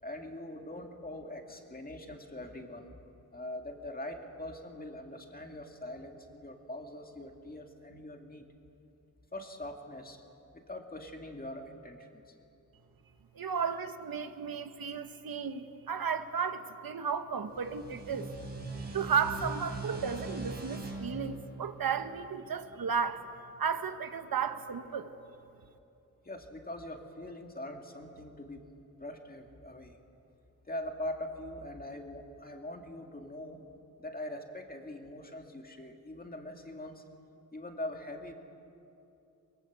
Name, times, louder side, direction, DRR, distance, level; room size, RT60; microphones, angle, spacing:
voice 1, 0.0-3.0 3.3-8.4 9.3-10.2 10.7-12.3 26.2-28.6 29.0-30.0 30.6-33.6 34.0-37.0 37.5-38.3, left 1 dB, 25° left, 2.0 m, -42 dB
voice 2, 13.3-18.3 18.7-23.3 23.6-25.1, right 6 dB, 85° right, 1.2 m, -34 dB
sound 1, 17.5-22.8, right 2 dB, 30° right, 3.4 m, -41 dB
22.5 x 21.5 x 8.1 m
wide cardioid pair, 140°, 34 cm